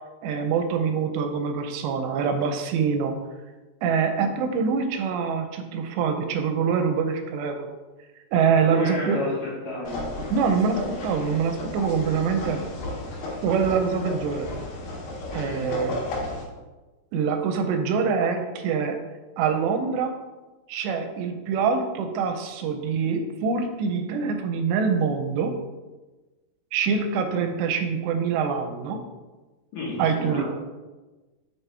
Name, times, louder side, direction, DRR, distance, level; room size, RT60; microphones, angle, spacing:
voice 1, 0.2-3.2 3.8-7.7 8.3-9.2 10.3-12.6 13.4-14.5 15.3-16.0 17.1-19.0 19.4-20.1 20.7-25.5 26.7-29.0 30.0-30.4, right 6 dB, 85° right, 6 dB, 2.8 m, -25 dB
voice 2, 8.6-10.1 15.4-15.7 29.7-30.4, left 1 dB, 65° left, -5 dB, 2.5 m, -32 dB
sound 1, 9.9-16.4, left 1 dB, 85° left, 3.6 m, -34 dB
6.4 x 5.7 x 3.4 m, 1.2 s
omnidirectional pair, 5.0 m